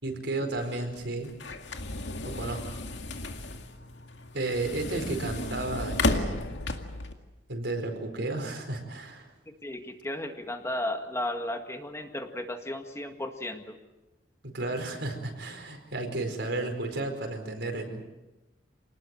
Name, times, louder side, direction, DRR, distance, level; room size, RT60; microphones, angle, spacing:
voice 1, 0.0-1.3 2.2-2.8 4.3-6.5 7.5-9.3 14.4-18.0, right 2 dB, 75° right, 4 dB, 4.8 m, -33 dB
sound 1, 0.6-7.1, left 2 dB, 90° left, 2.2 m, -33 dB
voice 2, 9.6-13.8, left 1 dB, 15° left, 5 dB, 1.8 m, -34 dB
27.5 x 19.5 x 7.7 m, 1.1 s
head